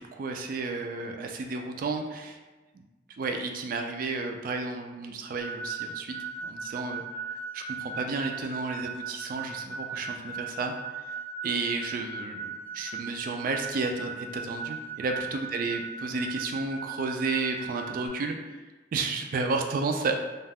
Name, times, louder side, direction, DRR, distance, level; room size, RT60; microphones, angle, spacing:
voice 1, 0.0-2.4 2.7-2.8 3.2-6.2 6.4-7.0 7.3-10.7 11.4-18.6 18.9-20.1, right 3 dB, 50° right, 3 dB, 0.3 m, -32 dB
sound 1, 5.4-18.1, right 4 dB, 10° left, 0.7 m, -38 dB
2.3 x 2.2 x 3.4 m, 1.2 s
head